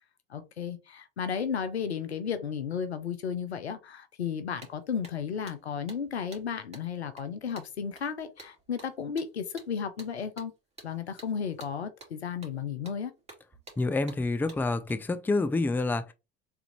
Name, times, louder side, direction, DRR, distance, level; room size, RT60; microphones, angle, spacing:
voice 1, 0.3-10.5 10.8-13.1, left 7 dB, 90° left, 0.6 m, -34 dB
sound 1, 4.2-4.3 4.6-14.9, right 2 dB, 20° right, 2.1 m, -52 dB
voice 2, 13.8-16.1, left 3 dB, 5° left, 0.4 m, -28 dB
3.5 x 3.4 x 3.0 m
figure-of-eight pair, 65°, 32 cm